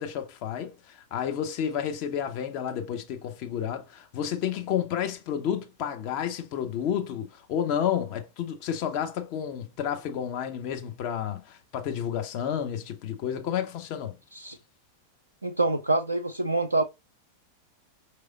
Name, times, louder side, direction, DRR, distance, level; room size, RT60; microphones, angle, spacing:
voice 1, 0.0-14.1, left 9 dB, 45° left, 1.0 m, -31 dB
voice 2, 15.4-16.8, right 2 dB, 80° right, 0.4 m, -26 dB
5.6 x 3.3 x 2.5 m
figure-of-eight pair, 90°, 0 cm